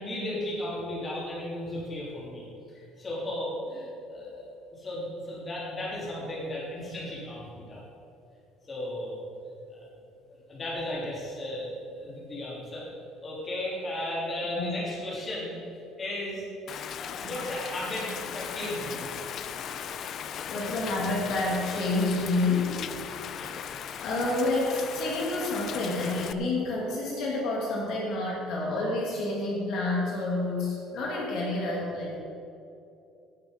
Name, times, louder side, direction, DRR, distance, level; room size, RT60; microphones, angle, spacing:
voice 1, 0.0-2.5 2.7-4.4 4.7-7.8 8.7-9.2 9.7-9.9 10.5-12.8 13.2-15.5 16.0-16.4 17.0-19.1 23.0-23.5, left 1 dB, 20° left, -6 dB, 3.4 m, -35 dB
Rain, 16.7-26.3, left 8 dB, 40° left, 0.5 m, -37 dB
voice 2, 20.5-22.8 23.3-23.6 24.0-32.2, left 2 dB, 55° left, -3 dB, 2.6 m, -29 dB
17.5 x 6.9 x 5.4 m, 2.7 s
cardioid pair, 170°, 0 cm